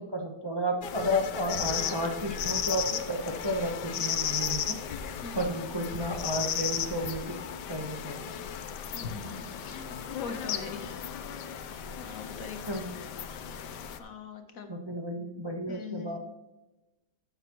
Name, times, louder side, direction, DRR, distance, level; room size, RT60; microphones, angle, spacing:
voice 1, 0.0-4.8 5.3-7.3 7.7-8.2 12.7-12.9 14.7-16.2, equal, 20° right, 2 dB, 0.9 m, -32 dB
sound 1, 0.8-14.0, left 9 dB, 90° left, 1.4 m, -35 dB
voice 2, 8.9-11.0 11.5-12.6 14.0-14.7 15.7-16.2, left 5 dB, 60° left, 6 dB, 1.4 m, -42 dB
14.5 x 7.0 x 3.1 m, 1.0 s
omnidirectional pair, 1.8 m